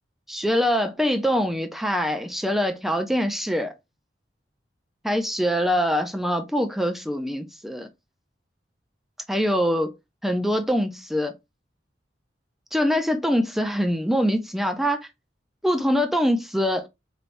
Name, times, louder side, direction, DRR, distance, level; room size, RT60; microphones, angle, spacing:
voice 1, 0.3-3.7 5.0-7.9 9.3-9.9 10.2-11.3 12.7-15.1 15.6-16.9, equal, ahead, 0.5 m, -24 dB
4.5 x 3.3 x 2.6 m
head